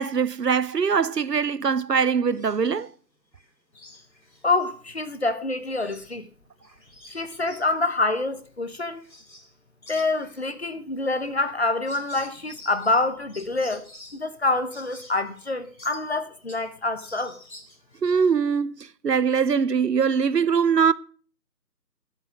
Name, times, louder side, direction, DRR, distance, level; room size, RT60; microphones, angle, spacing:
voice 1, 0.0-2.9 18.0-20.9, right 6 dB, 70° right, 0.8 m, -22 dB
sound 1, 2.3-2.9 3.3-5.1 5.5-9.6 9.8-16.7 17.0-18.0, left 1 dB, 90° left, 2.8 m, -49 dB
voice 2, 4.4-6.3 7.1-9.0 9.9-13.9 14.1-17.4, left 2 dB, 40° left, 1.0 m, -26 dB
11.0 x 8.3 x 6.8 m
figure-of-eight pair, 155°, 50 cm